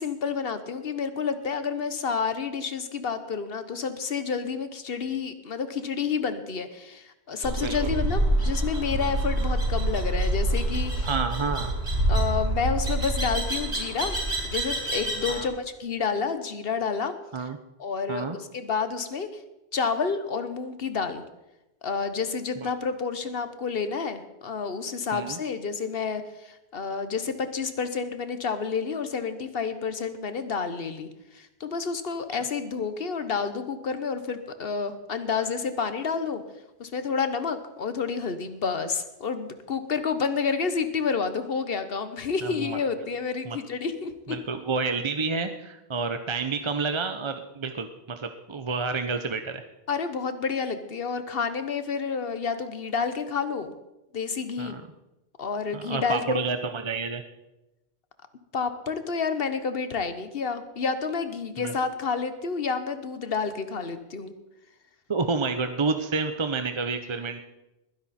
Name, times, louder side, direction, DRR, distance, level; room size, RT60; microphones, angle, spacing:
voice 1, 0.0-11.1 12.1-14.2 14.4-17.5 17.8-19.4 19.7-21.2 21.8-36.4 36.8-44.4 49.9-53.7 54.1-54.8 55.4-56.4 58.5-64.3, left 5 dB, 60° left, 10 dB, 1.3 m, -29 dB
sound 1, 7.4-15.4, right 1 dB, 85° right, 5.8 m, -26 dB
voice 2, 11.0-11.7 15.3-15.5 17.3-17.6 18.1-18.4 22.6-22.7 25.1-25.4 42.4-42.8 43.4-43.6 44.3-49.6 54.6-54.8 55.7-57.2 61.6-61.7 65.1-67.4, right 4 dB, 30° right, 7 dB, 0.7 m, -29 dB
20.5 x 10.5 x 4.3 m, 0.96 s
omnidirectional pair, 1.1 m